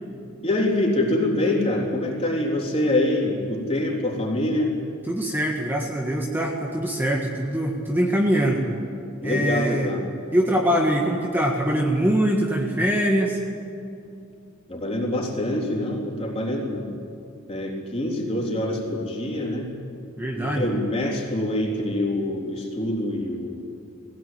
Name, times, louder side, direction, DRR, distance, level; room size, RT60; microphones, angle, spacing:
voice 1, 0.4-4.7 9.2-10.1 14.7-16.9 17.5-19.7 20.2-23.6, left 1 dB, 30° left, -2 dB, 3.7 m, -25 dB
voice 2, 5.1-8.7 9.2-9.9 10.3-13.4 20.2-20.7, equal, 10° right, -1 dB, 1.6 m, -23 dB
20.0 x 17.5 x 9.5 m, 2.6 s
head